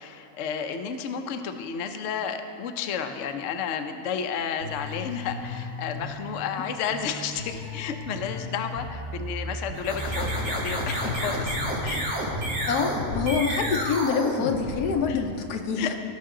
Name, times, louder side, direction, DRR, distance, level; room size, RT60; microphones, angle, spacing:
voice 1, 0.0-11.6 11.8-12.0 15.1-15.2 15.8-15.9, left 7 dB, 60° left, 7 dB, 0.9 m, -32 dB
sound 1, 4.6-13.7, left 2 dB, 55° right, 1.7 m, -37 dB
sound 2, 9.7-15.2, equal, 80° right, 2.7 m, -30 dB
voice 2, 12.7-16.0, left 6 dB, 85° left, 4 dB, 1.4 m, -26 dB
17.5 x 5.9 x 3.8 m, 2.6 s
omnidirectional pair, 1.6 m